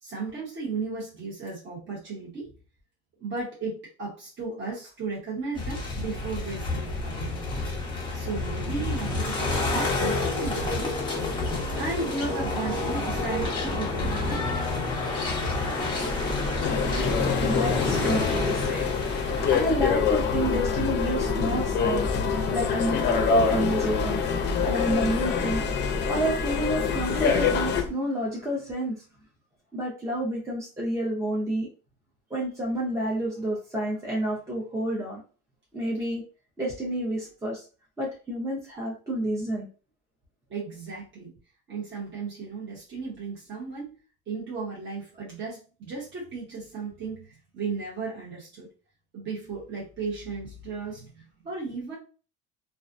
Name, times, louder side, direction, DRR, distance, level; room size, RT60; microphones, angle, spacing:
voice 1, 0.0-2.5 3.2-7.3 8.1-11.0 11.8-14.5 40.5-41.4 41.7-43.9 44.3-48.7 49.1-51.9, right 4 dB, 40° right, -6 dB, 1.1 m, -35 dB
sound 1, 5.5-19.6, left 3 dB, 15° left, 0.8 m, -29 dB
sound 2, 16.1-27.9, left 1 dB, 70° right, 1.0 m, -35 dB
sound 3, 16.6-27.8, left 6 dB, 40° left, 0.5 m, -26 dB
voice 2, 17.4-18.9 19.5-22.2 22.5-23.0 23.3-24.3 24.6-25.7 26.1-29.0 29.7-31.7 32.3-35.2 35.7-36.2 36.6-37.6 38.0-39.7, right 1 dB, 10° right, -4 dB, 0.5 m, -29 dB
2.4 x 2.1 x 2.5 m, 0.37 s
cardioid pair, 135°, 29 cm